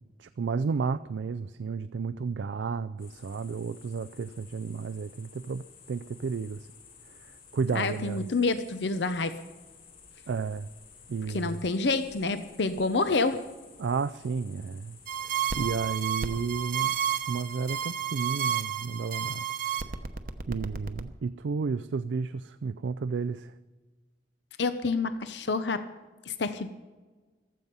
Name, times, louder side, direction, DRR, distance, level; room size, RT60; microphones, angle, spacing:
voice 1, 0.0-6.7 7.1-8.3 10.3-10.7 11.1-11.6 13.8-15.0 15.2-16.9 17.3-19.5 19.7-19.8 20.5-23.5, right 5 dB, 85° right, 13 dB, 0.4 m, -32 dB
sound 1, 3.0-17.8, left 6 dB, 50° left, 6.5 m, -54 dB
voice 2, 7.7-9.4 11.3-13.4 24.6-25.8 26.3-26.7, left 3 dB, 75° left, 10 dB, 0.8 m, -28 dB
sound 2, 15.1-21.0, right 9 dB, 50° right, 0.9 m, -31 dB
15.0 x 13.5 x 5.5 m, 1.3 s
head